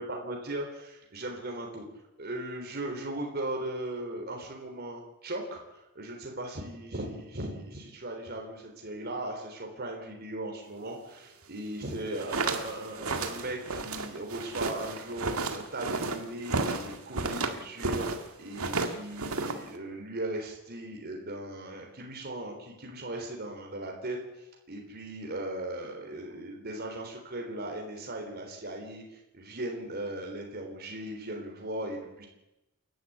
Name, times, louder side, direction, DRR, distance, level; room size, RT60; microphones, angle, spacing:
voice 1, 0.0-1.9 2.2-18.1 18.4-24.2 24.7-32.3, right 1 dB, 50° right, 1 dB, 3.6 m, -38 dB
sound 1, 12.0-18.2 18.5-19.8, right 3 dB, 85° right, 2.0 m, -32 dB
29.0 x 12.0 x 8.5 m, 0.95 s
head